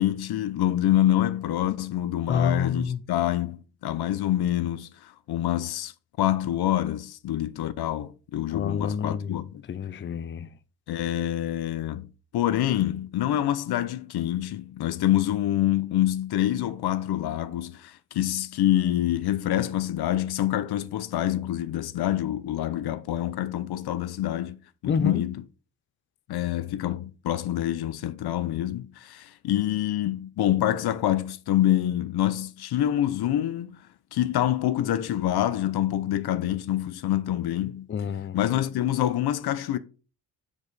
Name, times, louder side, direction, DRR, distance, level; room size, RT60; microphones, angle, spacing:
voice 1, 0.0-5.9 6.2-9.6 10.9-12.1 12.3-24.6 24.8-25.4 26.3-33.8 34.1-37.9 38.3-39.8, left 12 dB, 85° left, 0.7 m, -26 dB
voice 2, 2.3-3.0 8.5-10.5 24.9-25.2 37.9-38.4, left 6 dB, 30° left, 0.5 m, -28 dB
7.1 x 4.9 x 4.1 m
cardioid pair, 120°, 37 cm